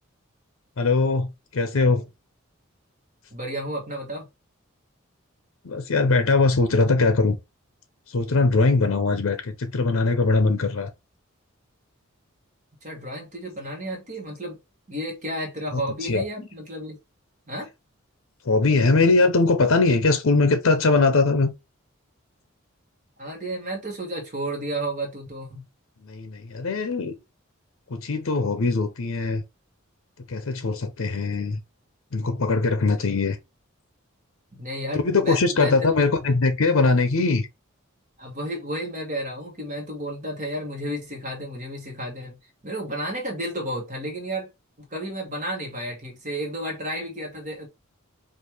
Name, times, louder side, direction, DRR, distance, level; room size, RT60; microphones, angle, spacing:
voice 1, 0.8-2.0 5.6-7.4 8.1-10.9 15.7-16.5 18.4-21.5 26.0-27.1 27.9-29.4 30.3-31.6 32.1-33.4 34.9-37.5, left 3 dB, 70° left, 0.6 m, -21 dB
voice 2, 3.3-4.3 12.8-14.6 14.9-17.0 17.5-17.7 23.2-25.6 34.5-35.9 38.2-42.4 42.6-44.5 44.8-47.7, right 1 dB, 35° right, 1.1 m, -32 dB
4.6 x 2.5 x 3.3 m
head